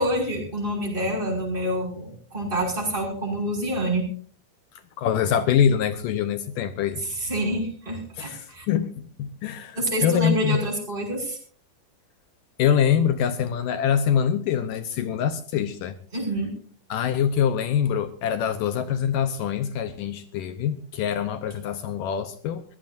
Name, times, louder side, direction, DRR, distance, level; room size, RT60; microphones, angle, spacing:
voice 1, 0.0-4.0 7.0-8.6 9.7-11.4 16.1-16.5, right 1 dB, 10° right, 5.8 m, -27 dB
voice 2, 5.0-7.0 8.2-10.6 12.6-16.0 16.9-22.6, left 8 dB, 75° left, 2.2 m, -24 dB
23.5 x 16.0 x 2.6 m
omnidirectional pair, 4.4 m